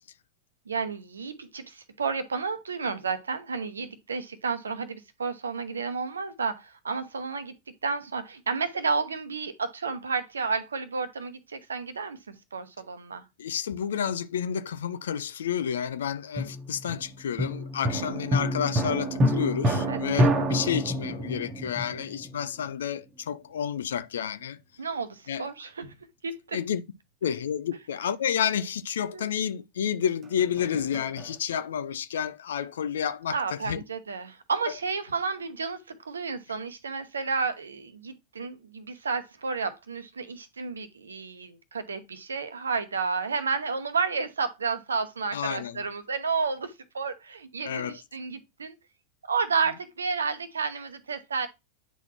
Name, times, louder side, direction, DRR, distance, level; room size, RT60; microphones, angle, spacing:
voice 1, 0.7-7.5 7.8-13.2 19.9-20.4 24.8-25.9 26.2-26.6 29.1-29.3 33.3-48.8 49.2-51.5, right 5 dB, 70° right, 0.9 m, -31 dB
voice 2, 13.4-24.6 25.3-25.5 26.5-26.8 27.2-33.8 45.3-45.8 47.7-48.0, left 8 dB, 65° left, 0.5 m, -30 dB
sound 1, 16.4-22.7 30.2-31.4, equal, 25° right, 1.3 m, -28 dB
9.1 x 4.0 x 2.9 m
figure-of-eight pair, 90°, 0 cm